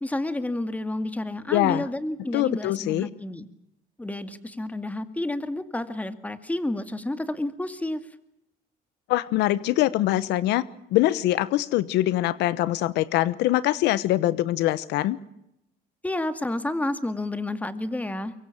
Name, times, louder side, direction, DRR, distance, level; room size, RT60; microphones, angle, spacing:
voice 1, 0.0-3.5 4.0-8.0 16.0-18.3, left 1 dB, 10° left, 10 dB, 2.1 m, -30 dB
voice 2, 1.5-1.8 2.3-3.1 9.1-10.6 10.9-15.2, left 15 dB, 85° left, 17 dB, 1.0 m, -23 dB
24.0 x 23.0 x 7.4 m, 0.83 s
cardioid pair, 110°, 17 cm